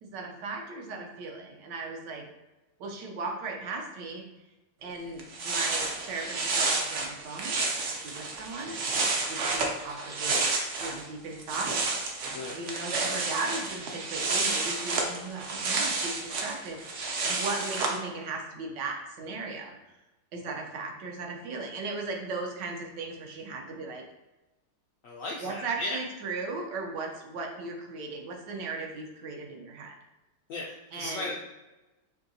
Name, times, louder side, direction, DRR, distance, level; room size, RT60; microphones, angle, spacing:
voice 1, 0.0-2.3 2.8-4.3 4.8-7.6 7.9-8.8 9.3-10.4 10.8-11.7 12.5-19.8 20.3-24.0 25.4-30.0 30.9-31.3, right 3 dB, 80° right, 2 dB, 1.4 m, -37 dB
sound 1, 4.9-5.0 5.2-11.0 11.3-18.0, right 3 dB, 65° right, 0.7 m, -30 dB
voice 2, 12.3-12.6 25.0-26.0 30.5-31.4, left 2 dB, 75° left, -3 dB, 0.7 m, -36 dB
5.1 x 2.7 x 2.7 m, 1.1 s
omnidirectional pair, 1.9 m